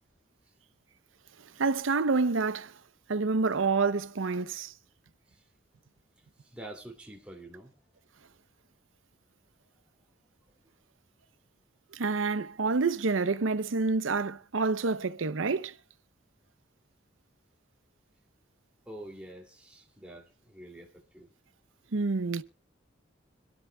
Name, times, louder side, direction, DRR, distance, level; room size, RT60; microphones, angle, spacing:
voice 1, 1.6-2.7 3.1-4.7 11.9-15.7 21.9-22.4, right 4 dB, 85° right, 0.7 m, -28 dB
voice 2, 6.4-7.8 18.9-21.3, right 1 dB, 5° right, 2.6 m, -47 dB
26.0 x 12.5 x 2.3 m
head